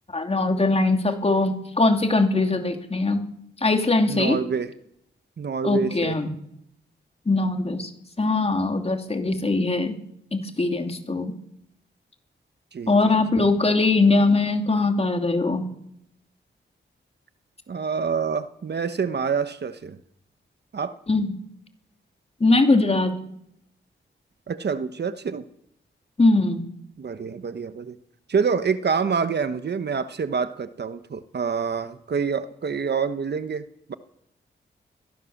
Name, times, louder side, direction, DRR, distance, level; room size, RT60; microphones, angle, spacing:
voice 1, 0.1-3.2 3.6-4.4 5.6-6.3 7.3-7.9 8.2-10.0 10.3-11.3 12.9-15.6 21.1-21.3 22.4-23.1 26.2-26.6, left 3 dB, 30° left, 5 dB, 3.0 m, -21 dB
voice 2, 4.1-4.7 5.4-6.1 12.7-13.1 17.7-20.0 20.7-20.9 24.5-25.4 27.0-28.0 28.3-33.9, right 6 dB, 55° right, 11 dB, 1.1 m, -27 dB
22.0 x 17.0 x 7.2 m, 0.75 s
wide cardioid pair, 105°, 20 cm